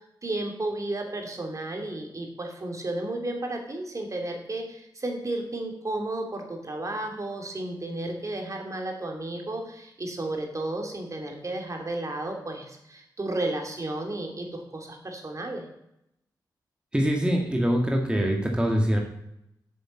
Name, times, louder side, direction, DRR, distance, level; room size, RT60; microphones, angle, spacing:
voice 1, 0.0-15.6, right 2 dB, 40° right, 2 dB, 2.8 m, -33 dB
voice 2, 16.9-19.0, equal, 10° right, 1 dB, 2.0 m, -24 dB
7.8 x 7.2 x 7.4 m, 0.80 s
cardioid pair, 55°, 8 cm